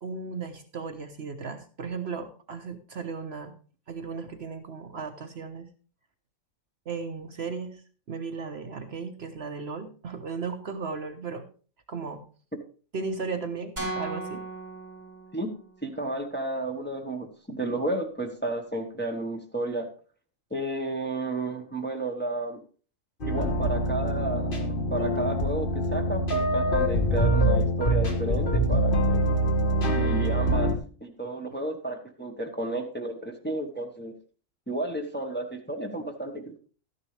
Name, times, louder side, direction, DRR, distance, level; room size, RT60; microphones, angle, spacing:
voice 1, 0.0-3.5 3.9-5.7 6.9-7.8 8.1-11.5 11.9-12.2 12.9-14.4, right 4 dB, 55° right, 7 dB, 1.1 m, -35 dB
sound 1, 13.8-15.9, right 2 dB, 20° right, 5.4 m, -36 dB
voice 2, 15.8-19.9 20.5-22.6 23.2-29.2 29.9-30.7 31.0-34.2 34.7-36.6, right 2 dB, 10° left, 2 dB, 1.2 m, -32 dB
sound 2, 23.2-30.8, right 1 dB, 40° left, 1.5 m, -24 dB
13.0 x 9.9 x 3.3 m, 0.39 s
omnidirectional pair, 1.4 m